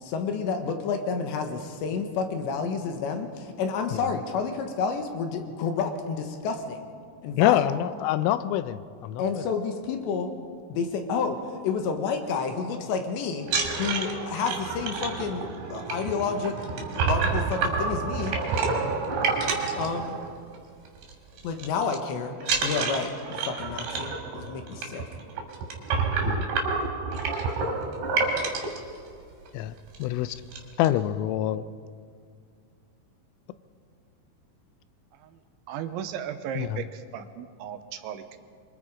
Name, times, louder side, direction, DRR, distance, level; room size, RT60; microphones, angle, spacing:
voice 1, 0.0-6.9 7.2-7.6 9.2-10.3 10.7-11.4 11.6-13.5 13.8-18.4 19.8-20.1 21.4-22.3 22.6-25.0, left 5 dB, 70° left, 5 dB, 3.5 m, -30 dB
voice 2, 7.4-9.4 26.2-26.5 29.5-29.7 30.0-30.4 30.8-31.6 36.6-36.8, left 12 dB, 90° left, 13 dB, 3.3 m, -26 dB
sound 1, 13.4-20.6 20.9-21.1 21.4-22.0 22.4-28.8 29.5-29.6 29.9-30.0 30.3-30.9, right 4 dB, 60° right, 4.4 m, -28 dB
voice 3, 35.7-38.4, right 9 dB, 80° right, 9 dB, 3.1 m, -36 dB
26.5 x 24.5 x 5.0 m, 2.2 s
omnidirectional pair, 5.6 m